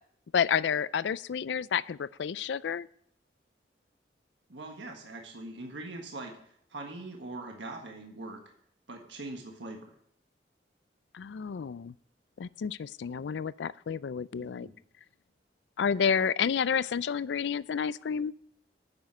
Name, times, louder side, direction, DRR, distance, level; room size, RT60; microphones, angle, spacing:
voice 1, 0.3-2.9 11.1-11.9 12.4-14.7 15.8-18.3, left 7 dB, 80° left, 19 dB, 0.4 m, -30 dB
voice 2, 4.5-6.4 6.7-8.4 8.9-9.8 14.4-14.7, right 2 dB, 90° right, 2 dB, 1.6 m, -42 dB
9.5 x 7.2 x 7.6 m, 0.66 s
head